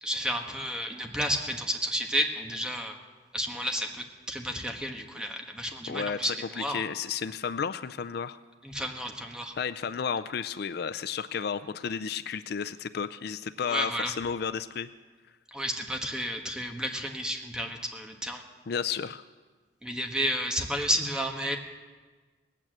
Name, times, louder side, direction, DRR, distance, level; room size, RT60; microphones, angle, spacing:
voice 1, 0.0-3.0 3.3-3.9 4.3-6.8 8.6-9.5 13.7-14.1 15.5-18.4 19.8-21.6, equal, 5° right, 3 dB, 1.3 m, -31 dB
voice 2, 5.9-8.4 9.6-14.9 18.7-19.2, left 6 dB, 60° left, 13 dB, 0.4 m, -32 dB
18.5 x 9.0 x 7.5 m, 1.4 s
head